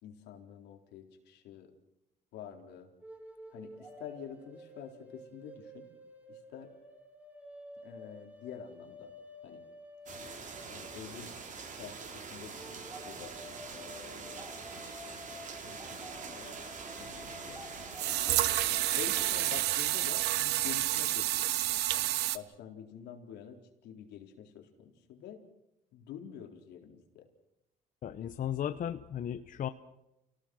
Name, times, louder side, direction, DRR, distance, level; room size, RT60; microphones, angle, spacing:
voice 1, 0.0-1.7 2.3-2.9 3.5-5.9 6.3-6.7 7.8-9.1 9.4-9.6 10.6-11.3 11.7-13.3 13.7-14.4 15.6-16.5 17.0-17.6 19.0-25.4 25.9-27.3 28.2-28.3, left 8 dB, 85° left, 3 dB, 4.1 m, -48 dB
sound 1, 3.0-11.4 12.5-20.7, left 1 dB, 10° right, 4.0 m, -51 dB
sound 2, 10.1-19.6, right 5 dB, 50° right, 5.2 m, -44 dB
sound 3, 17.1-17.2 18.0-22.4, right 15 dB, 80° right, 1.1 m, -29 dB
voice 2, 28.0-29.7, left 10 dB, 50° left, 9 dB, 1.0 m, -35 dB
29.5 x 18.5 x 6.4 m, 0.89 s
cardioid pair, 110°, 17 cm